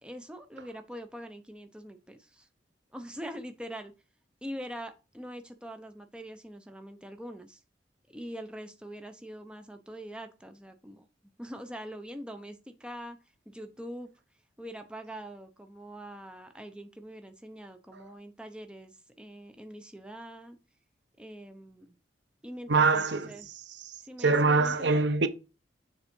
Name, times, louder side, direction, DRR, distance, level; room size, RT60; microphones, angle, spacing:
voice 1, 0.0-2.5 2.9-3.9 4.4-7.6 8.1-11.1 11.4-13.2 13.5-14.1 14.6-20.6 21.2-22.0 22.4-23.5 24.0-25.0, equal, 5° right, 0.8 m, -43 dB
voice 2, 22.7-23.3 23.8-25.3, right 4 dB, 75° right, 0.8 m, -25 dB
7.2 x 4.0 x 5.3 m
head